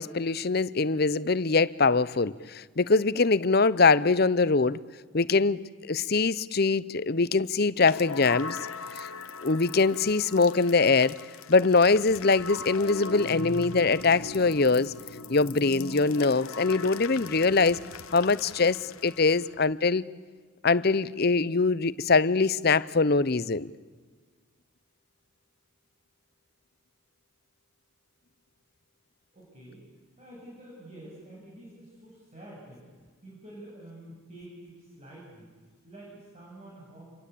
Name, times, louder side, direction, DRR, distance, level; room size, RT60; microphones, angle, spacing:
voice 1, 0.0-4.8 5.1-8.6 9.0-9.1 9.4-11.2 11.5-14.9 15.3-17.8 18.1-20.0 20.6-23.7, left 4 dB, 45° left, 0.7 m, -23 dB
sound 1, 7.7-19.6, left 4 dB, 85° left, 1.1 m, -40 dB
voice 2, 29.3-29.9 30.2-32.8 33.2-35.5 35.8-37.2, right 1 dB, 30° right, 7.6 m, -48 dB
28.0 x 23.5 x 8.5 m
head